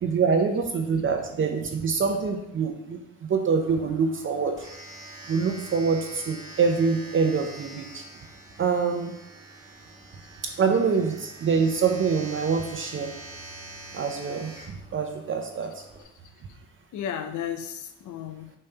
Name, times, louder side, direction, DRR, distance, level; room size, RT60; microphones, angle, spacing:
voice 1, 0.0-4.6 5.3-8.0 8.6-9.1 10.4-13.1 13.9-15.8, right 5 dB, 40° right, 4 dB, 0.7 m, -25 dB
Domestic sounds home sounds, 3.5-16.0, right 2 dB, 10° right, 1.6 m, -45 dB
voice 2, 16.0-16.6 16.9-18.6, left 9 dB, 75° left, 9 dB, 0.7 m, -35 dB
5.3 x 3.3 x 5.5 m, 0.82 s
cardioid pair, 90°, 30 cm